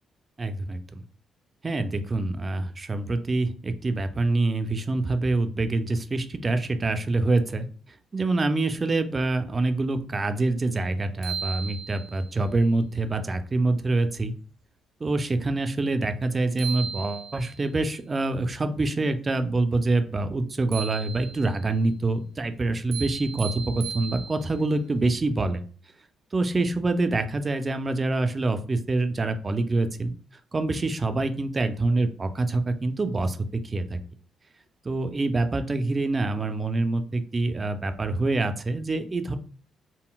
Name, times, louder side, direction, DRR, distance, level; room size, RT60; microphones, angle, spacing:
voice 1, 0.4-1.0 1.6-7.7 8.1-14.3 15.0-25.6 26.3-30.1 30.5-33.4 33.6-34.0 34.8-39.4, right 2 dB, 30° right, 8 dB, 0.4 m, -26 dB
sound 1, 10.8-10.9 11.2-12.3 16.2-16.3 16.6-17.6 20.7-21.6 22.9-24.6, right 7 dB, 80° right, 0.6 m, -36 dB
3.7 x 2.0 x 2.3 m, 0.42 s
cardioid pair, 90°, 0 cm